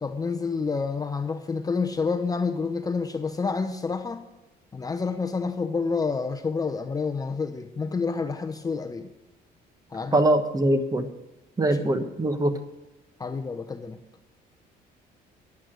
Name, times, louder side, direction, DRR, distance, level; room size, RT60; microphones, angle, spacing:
voice 1, 0.0-4.2 4.7-9.1 9.9-10.2 11.6-11.9 13.2-14.0, left 4 dB, 20° left, 6 dB, 0.7 m, -29 dB
voice 2, 10.1-11.1 11.6-12.5, right 1 dB, 20° right, 8 dB, 1.3 m, -22 dB
10.5 x 8.4 x 6.4 m, 1.1 s
cardioid pair, 110°, 17 cm